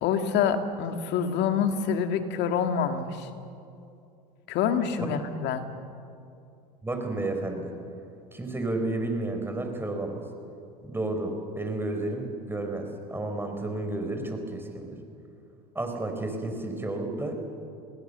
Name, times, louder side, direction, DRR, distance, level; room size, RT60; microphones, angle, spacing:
voice 1, 0.0-3.3 4.5-5.6, left 7 dB, 60° left, 7 dB, 2.3 m, -26 dB
voice 2, 6.8-7.7 8.3-10.2 10.8-15.0 15.7-17.4, right 2 dB, 10° right, 4 dB, 4.8 m, -31 dB
28.0 x 19.5 x 7.0 m, 2.6 s
hypercardioid pair, 85°, 20 cm